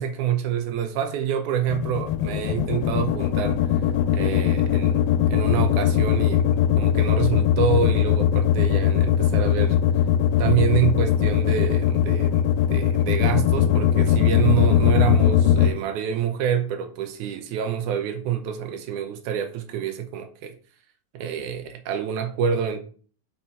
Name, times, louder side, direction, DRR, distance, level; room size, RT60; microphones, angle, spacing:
voice 1, 0.0-3.6 4.1-5.0 5.3-9.8 10.4-20.6 21.1-22.8, right 8 dB, 75° right, 2.0 m, -27 dB
sound 1, 1.7-15.7, left 11 dB, 85° left, 2.4 m, -20 dB
5.7 x 4.4 x 5.4 m
omnidirectional pair, 4.0 m